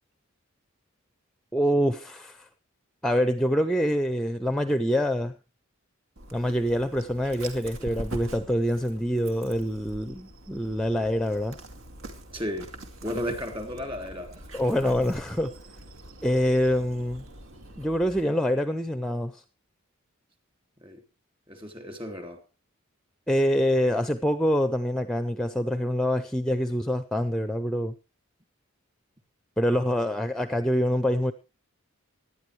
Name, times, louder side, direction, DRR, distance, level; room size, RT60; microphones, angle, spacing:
voice 1, 1.5-2.5 3.0-5.3 6.3-11.6 14.5-15.6 16.2-17.2 17.8-19.4 23.3-27.9 29.6-31.3, equal, ahead, 0.6 m, -25 dB
Dog, 6.2-18.2, right 1 dB, 70° right, 2.4 m, -44 dB
voice 2, 12.3-12.7 13.0-14.5 20.8-21.0 21.5-22.4, equal, 25° right, 3.1 m, -34 dB
18.5 x 11.5 x 3.2 m
head